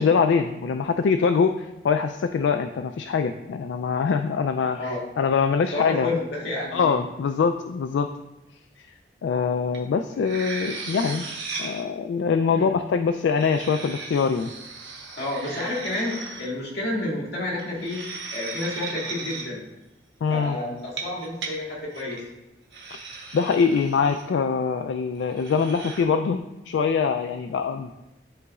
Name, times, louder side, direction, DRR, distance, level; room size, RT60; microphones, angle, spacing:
voice 1, 0.0-6.1 6.7-8.1 8.8-8.9 9.2-11.3 11.6-14.5 20.2-20.6 23.3-27.9, left 5 dB, 85° left, 7 dB, 0.3 m, -23 dB
voice 2, 5.7-7.0 12.5-12.7 15.2-18.0 18.3-19.6 20.3-22.2, left 2 dB, 65° left, -4 dB, 2.0 m, -30 dB
sound 1, 9.7-9.8 10.1-11.8 13.1-16.5 17.6-19.5 20.8-21.5 21.9-22.2 22.7-24.2 25.3-26.0, right 4 dB, 80° right, 1.1 m, -36 dB
11.0 x 3.9 x 2.3 m, 0.97 s
head